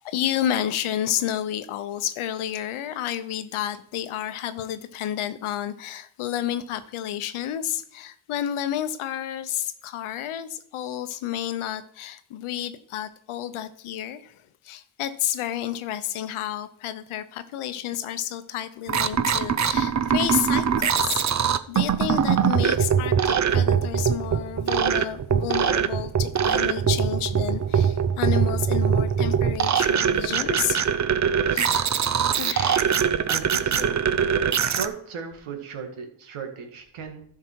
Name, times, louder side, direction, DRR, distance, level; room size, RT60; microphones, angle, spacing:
voice 1, 0.0-21.2 21.7-30.9 31.5-31.9 32.3-32.9, left 11 dB, 85° left, 12 dB, 0.9 m, -30 dB
sound 1, 18.9-34.9, right 7 dB, 35° right, 0.6 m, -22 dB
voice 2, 33.3-34.1 34.6-37.2, right 5 dB, 85° right, 4 dB, 1.9 m, -36 dB
12.0 x 5.9 x 4.5 m, 0.65 s
cardioid pair, 80°, 48 cm